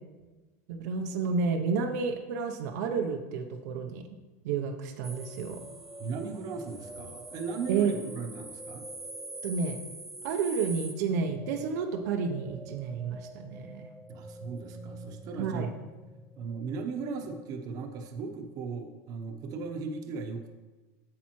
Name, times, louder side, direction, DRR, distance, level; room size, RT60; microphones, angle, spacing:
voice 1, 0.7-4.0 4.4-5.6 7.7-7.9 9.4-9.8 10.2-13.9 15.4-15.7, right 5 dB, 80° right, 4 dB, 0.7 m, -30 dB
sound 1, 5.0-17.6, right 1 dB, 5° right, 0.5 m, -45 dB
voice 2, 6.0-8.8 14.1-15.7 16.4-20.5, right 5 dB, 45° right, 5 dB, 0.9 m, -37 dB
8.6 x 7.0 x 3.1 m, 1.2 s
supercardioid pair, 135°, 9 cm